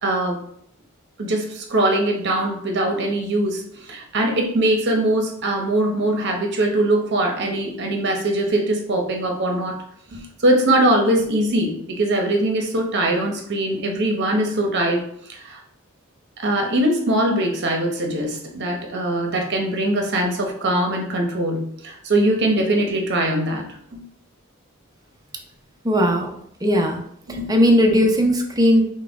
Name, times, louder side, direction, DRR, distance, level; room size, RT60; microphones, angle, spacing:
voice 1, 0.0-0.4 1.2-9.8 10.1-15.0 15.3-15.6 16.4-23.6 23.9-24.0 27.3-27.5, right 1 dB, 55° right, 3 dB, 0.9 m, -22 dB
voice 2, 25.8-26.3 26.6-27.0 27.5-28.8, equal, 20° right, 1 dB, 0.7 m, -17 dB
5.7 x 2.3 x 3.5 m, 0.68 s
head